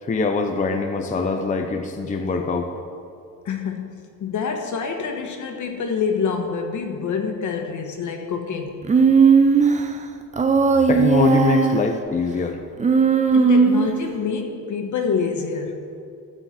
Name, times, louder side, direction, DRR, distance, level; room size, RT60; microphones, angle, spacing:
voice 1, 0.0-2.7 10.9-12.6, left 4 dB, 25° left, 4 dB, 0.6 m, -23 dB
voice 2, 3.4-3.9 4.2-8.8 13.3-15.8, left 5 dB, 60° left, 4 dB, 1.3 m, -26 dB
Human voice, 8.9-9.8 10.4-11.9 12.8-14.1, right 5 dB, 20° right, 0.6 m, -17 dB
13.0 x 4.5 x 8.1 m, 2.5 s
cardioid pair, 145°, 33 cm